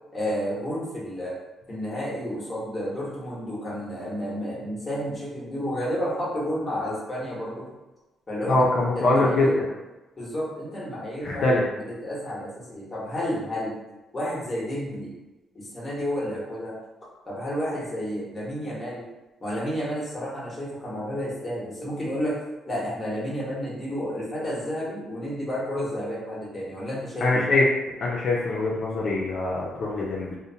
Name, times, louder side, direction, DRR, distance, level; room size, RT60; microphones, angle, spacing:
voice 1, 0.1-1.3 1.7-7.7 8.3-9.6 10.2-13.7 14.1-15.1 15.5-16.8 17.3-19.1 19.4-22.4 22.7-27.5, equal, 20° left, -6 dB, 1.1 m, -31 dB
voice 2, 8.5-9.6 11.2-11.6 27.2-27.6 28.0-30.4, left 2 dB, 60° left, -5 dB, 0.5 m, -23 dB
2.6 x 2.1 x 2.7 m, 1.1 s
cardioid pair, 90°, 0 cm